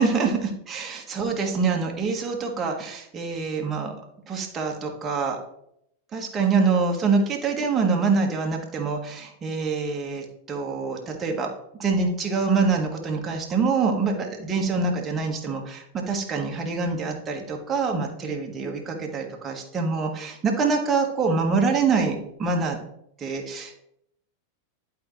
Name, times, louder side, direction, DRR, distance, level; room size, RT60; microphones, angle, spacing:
voice 1, 0.0-3.9 4.3-5.4 6.1-11.5 11.8-22.8 23.2-23.7, right 4 dB, 20° right, 1 dB, 1.5 m, -25 dB
11.0 x 4.7 x 3.2 m, 0.76 s
figure-of-eight pair, 90°, 0 cm